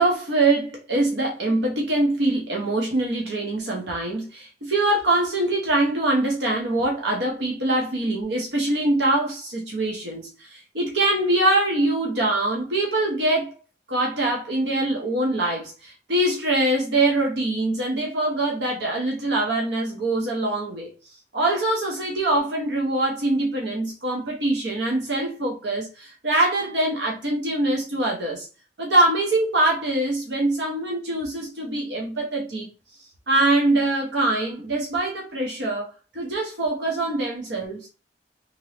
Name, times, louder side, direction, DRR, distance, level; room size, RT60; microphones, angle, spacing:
voice 1, 0.0-13.5 13.9-20.9 21.3-28.5 28.8-32.7 33.3-35.9 36.1-37.9, right 2 dB, 80° right, 0.8 m, -23 dB
2.9 x 2.6 x 3.1 m
head